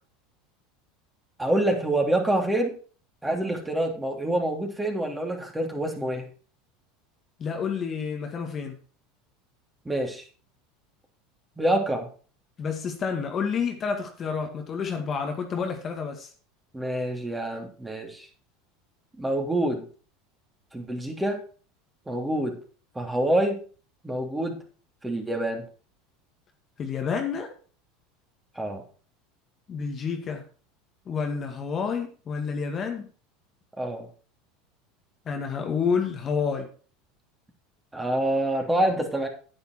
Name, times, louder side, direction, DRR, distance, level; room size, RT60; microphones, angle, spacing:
voice 1, 1.4-2.7 3.2-6.3 9.8-10.2 11.6-12.1 16.7-18.3 19.2-19.8 20.7-21.4 22.1-22.6 22.9-23.6 24.0-24.6 25.0-25.7 28.5-28.8 33.8-34.1 37.9-39.3, right 1 dB, 10° right, 2 dB, 3.2 m, -26 dB
voice 2, 7.4-8.8 12.6-16.3 26.8-27.5 29.7-30.4 31.1-33.1 35.3-36.7, left 6 dB, 35° left, 4 dB, 1.9 m, -29 dB
9.7 x 9.1 x 4.6 m, 0.39 s
hypercardioid pair, 95°, 0 cm